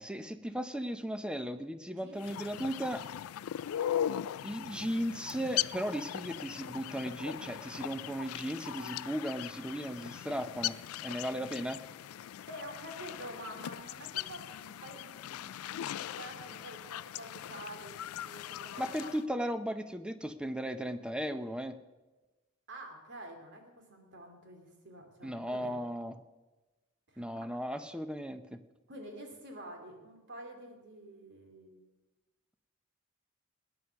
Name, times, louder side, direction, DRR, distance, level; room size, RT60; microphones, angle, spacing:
voice 1, 0.0-3.0 4.4-10.8 11.0-11.8 18.8-21.8 25.2-26.2 27.2-28.6, equal, 5° right, 10 dB, 0.7 m, -36 dB
voice 2, 1.8-2.2 11.1-11.5 12.5-19.1 22.7-25.8 27.1-27.2 28.9-31.8, right 1 dB, 60° right, 3 dB, 2.9 m, -48 dB
sound 1, 2.2-19.2, left 11 dB, 85° left, 0.3 m, -39 dB
18.0 x 9.6 x 5.8 m, 1.2 s
head